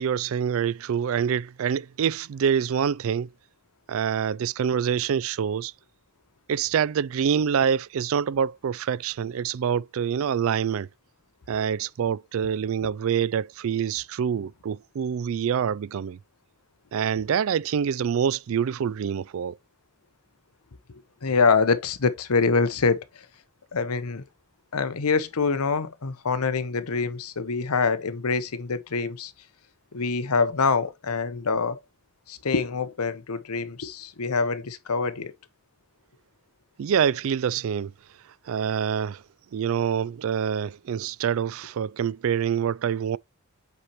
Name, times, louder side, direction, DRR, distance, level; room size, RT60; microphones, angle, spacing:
voice 1, 0.0-3.3 3.9-5.7 6.5-10.9 11.5-16.2 16.9-19.6 36.8-37.9 38.5-39.2 39.5-43.2, right 7 dB, 65° right, 0.3 m, -26 dB
voice 2, 20.9-23.3 23.7-24.2 24.7-29.3 29.9-31.8 32.3-35.3, left 4 dB, 85° left, 0.8 m, -25 dB
8.0 x 4.3 x 3.0 m
head